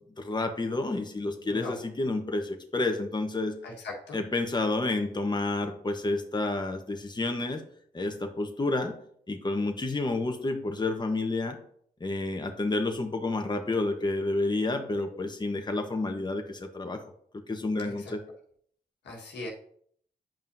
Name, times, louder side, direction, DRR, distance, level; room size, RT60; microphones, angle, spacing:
voice 1, 0.2-3.6 4.1-7.6 7.9-8.9 9.3-11.6 12.0-17.0 17.5-18.2, left 2 dB, 25° left, 4 dB, 1.0 m, -30 dB
voice 2, 3.6-4.2 18.0-18.1 19.0-19.5, left 2 dB, 80° left, -1 dB, 1.5 m, -39 dB
8.9 x 5.4 x 2.7 m, 0.63 s
supercardioid pair, 45°, 18 cm